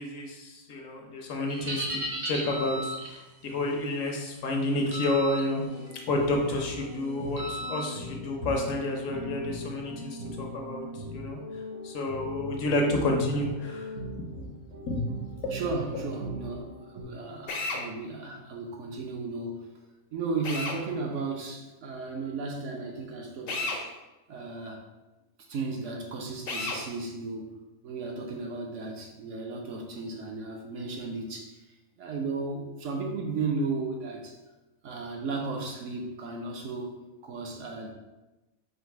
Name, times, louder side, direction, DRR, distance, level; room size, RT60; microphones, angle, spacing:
voice 1, 0.0-5.6 6.1-10.8 11.1-11.4 11.8-13.9 14.8-15.0 15.4-15.6 15.9-16.0, left 2 dB, 70° left, 1 dB, 1.1 m, -30 dB
sound 1, 1.5-3.2 4.9-5.4 5.9-6.1 7.4-7.9, equal, 45° right, 0.6 m, -35 dB
sound 2, 5.6-17.0, left 1 dB, 85° right, 1.2 m, -40 dB
voice 2, 15.5-19.7 20.1-23.9 24.3-24.8 25.5-27.5 27.8-31.6 32.0-34.4 34.8-37.9, right 3 dB, 65° right, 1 dB, 0.9 m, -35 dB
Drill, 17.5-17.8 20.4-20.8 23.5-23.8 26.5-26.8, left 3 dB, 55° left, 0.7 m, -32 dB
3.9 x 2.5 x 4.5 m, 1.1 s
omnidirectional pair, 1.5 m